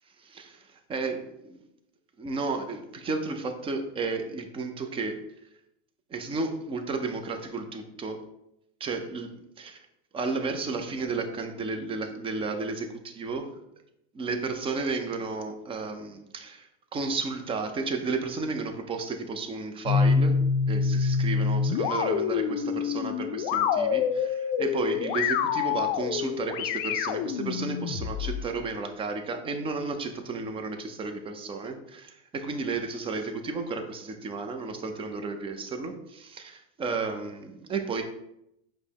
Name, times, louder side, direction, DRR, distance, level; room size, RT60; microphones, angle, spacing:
voice 1, 0.2-1.6 2.2-5.2 6.1-8.2 8.8-9.9 10.1-13.5 14.1-20.4 20.7-38.0, right 3 dB, 15° right, 5 dB, 0.4 m, -33 dB
sound 1, 19.8-28.4, left 6 dB, 55° left, 0.4 m, -26 dB
5.1 x 2.1 x 4.5 m, 0.82 s
supercardioid pair, 120°, 34 cm